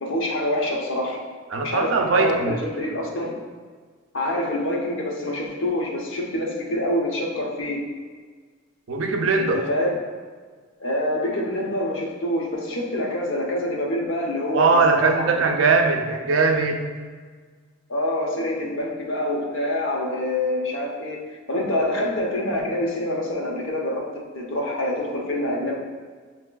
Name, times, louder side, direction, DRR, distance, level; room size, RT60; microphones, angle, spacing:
voice 1, 0.0-1.2 1.6-3.4 4.1-7.9 9.4-9.9 10.8-15.4 17.9-21.2 21.5-24.1 24.3-25.8, left 1 dB, 70° left, -1 dB, 0.8 m, -26 dB
voice 2, 1.5-2.5 8.9-9.6 14.5-16.9, right 4 dB, 70° right, 4 dB, 0.5 m, -20 dB
6.7 x 2.9 x 2.2 m, 1.6 s
head